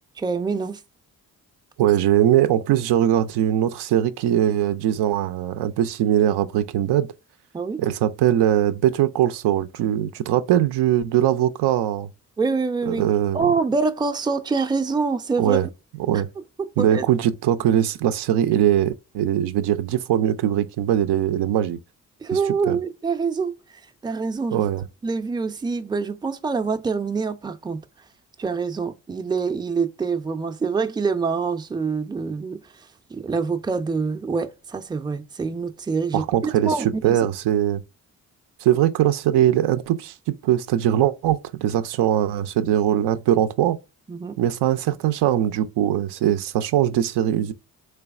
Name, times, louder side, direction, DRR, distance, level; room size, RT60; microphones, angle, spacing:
voice 1, 0.2-0.8 7.5-7.8 12.4-13.0 13.3-15.6 16.1-16.2 16.6-17.0 22.2-23.6 24.0-24.7 25.0-27.8 28.4-37.3 44.1-44.4, right 4 dB, 10° right, 0.5 m, -25 dB
voice 2, 1.8-7.1 7.8-12.1 12.9-13.5 15.4-15.7 16.1-16.3 16.8-21.8 22.3-22.4 22.7-22.8 24.5-24.8 36.1-37.8 38.6-43.8 44.4-47.5, right 11 dB, 65° right, 0.5 m, -21 dB
3.3 x 3.2 x 2.3 m
hypercardioid pair, 40°, 43 cm